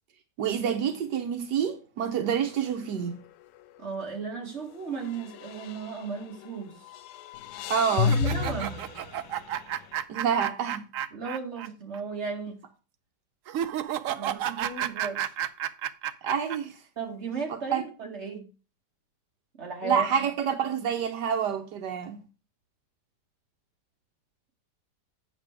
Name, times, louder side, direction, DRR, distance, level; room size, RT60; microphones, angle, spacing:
voice 1, 0.4-3.1 7.7-8.1 10.1-10.8 16.2-16.7 17.5-17.8 19.8-22.2, right 7 dB, 80° right, 1.5 m, -27 dB
sound 1, 2.4-2.8 3.1-3.2 5.0-6.5 6.8-9.8, left 7 dB, 85° left, 1.2 m, -31 dB
voice 2, 3.8-6.7 8.1-8.8 11.1-12.6 14.1-15.3 17.0-18.5 19.6-20.1, right 5 dB, 40° right, 2.3 m, -35 dB
sound 2, 8.0-11.7 11.9-12.0 13.5-16.6, right 10 dB, 65° right, 0.9 m, -32 dB
8.9 x 6.3 x 4.6 m
omnidirectional pair, 1.8 m